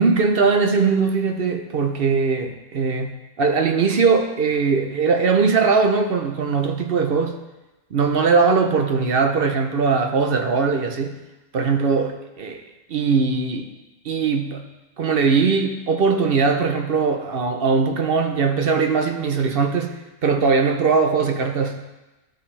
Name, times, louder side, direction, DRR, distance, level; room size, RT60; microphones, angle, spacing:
voice 1, 0.0-7.3 7.9-11.2 11.5-12.6 12.9-13.7 14.0-14.7 15.0-20.0 20.2-21.8, right 5 dB, 50° right, 5 dB, 0.8 m, -20 dB
12.5 x 5.7 x 3.3 m, 1.1 s
omnidirectional pair, 1.5 m